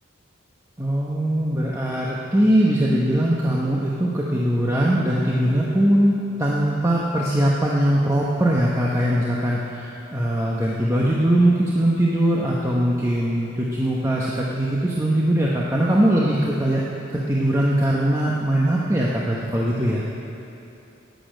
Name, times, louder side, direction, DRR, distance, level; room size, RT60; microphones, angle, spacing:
voice 1, 0.8-16.8 17.1-20.0, right 1 dB, 15° right, -5 dB, 1.0 m, -21 dB
11.5 x 8.5 x 9.1 m, 3.0 s
head